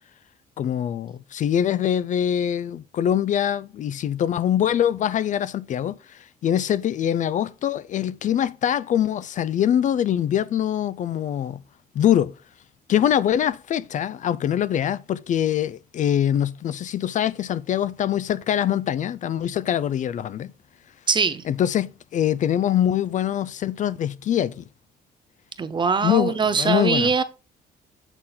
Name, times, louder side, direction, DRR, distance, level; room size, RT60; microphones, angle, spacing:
voice 1, 0.6-11.6 12.0-12.3 12.9-20.5 21.5-24.6 26.0-27.1, left 10 dB, 50° left, 0.4 m, -23 dB
voice 2, 21.1-21.4 25.6-27.2, right 5 dB, 30° right, 0.8 m, -22 dB
8.0 x 3.7 x 4.2 m
cardioid pair, 105°, 16 cm